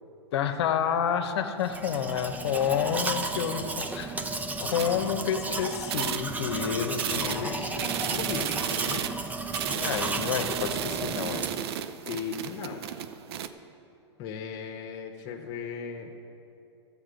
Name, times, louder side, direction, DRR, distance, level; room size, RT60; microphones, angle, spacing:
voice 1, 0.3-4.1 4.6-7.9 9.7-11.5, left 8 dB, 65° left, 6 dB, 0.9 m, -29 dB
Domestic sounds home sounds, 1.6-11.7, right 2 dB, 10° right, 0.6 m, -34 dB
sound 1, 4.8-5.5 5.8-6.6 7.0-13.5, right 9 dB, 60° right, 0.6 m, -33 dB
voice 2, 7.1-7.6 8.1-9.0 12.0-12.9 14.2-16.1, left 6 dB, 45° left, 1 dB, 1.1 m, -37 dB
13.5 x 8.6 x 5.1 m, 2.7 s
hypercardioid pair, 110°, 15 cm